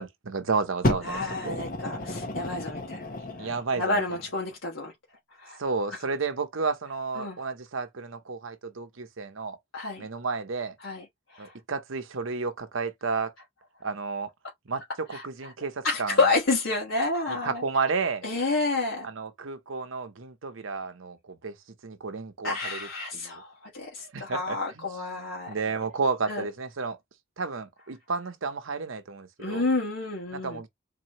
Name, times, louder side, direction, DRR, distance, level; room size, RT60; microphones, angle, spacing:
voice 1, 0.0-1.6 3.4-4.0 5.6-9.6 10.0-10.7 11.4-13.3 13.8-14.3 14.7-14.8 15.1-16.2 17.3-18.3 19.0-21.6 21.8-22.9 23.1-23.4 24.0-24.9 25.1-27.0 27.4-29.7 30.3-30.7, right 4 dB, 80° right, 0.8 m, -32 dB
Fire, 0.8-3.7 4.5-4.6, left 1 dB, 40° left, 0.8 m, -31 dB
voice 2, 1.0-3.0 3.4-4.9 5.4-5.6 7.2-7.4 9.7-10.1 10.8-11.0 11.3-11.5 15.1-15.2 15.8-17.6 18.2-19.1 22.4-25.5 26.3-26.4 29.4-30.6, left 3 dB, 75° left, 1.4 m, -29 dB
4.2 x 2.7 x 3.0 m
head